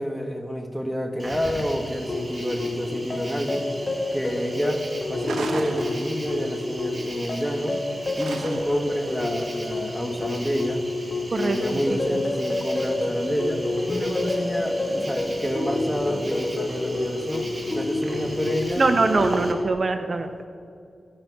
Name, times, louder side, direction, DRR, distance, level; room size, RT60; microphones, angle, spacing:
voice 1, 0.0-3.7 4.1-4.8 5.1-7.8 8.2-10.8 11.3-17.5 17.7-18.8, equal, 5° left, 5 dB, 1.7 m, -28 dB
Cricket, 1.2-19.5, right 1 dB, 35° right, 2.1 m, -39 dB
sound 1, 2.1-19.7, left 2 dB, 45° left, 1.8 m, -29 dB
sound 2, 5.2-6.5 8.2-8.9, right 3 dB, 85° right, 1.2 m, -34 dB
voice 2, 18.8-20.5, right 3 dB, 55° right, 8 dB, 0.8 m, -22 dB
15.0 x 5.9 x 9.6 m, 2.3 s
cardioid pair, 45°, 0 cm